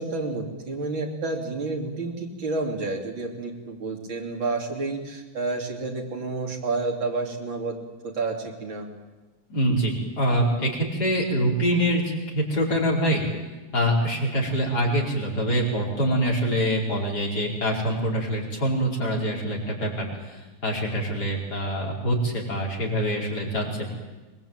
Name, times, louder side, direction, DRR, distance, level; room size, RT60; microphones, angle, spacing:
voice 1, 0.0-7.8 8.0-8.9, right 3 dB, 75° right, 1 dB, 3.9 m, -30 dB
voice 2, 9.5-13.2 13.7-23.9, equal, 55° left, -2 dB, 5.6 m, -25 dB
24.5 x 20.5 x 9.0 m, 1.2 s
omnidirectional pair, 2.1 m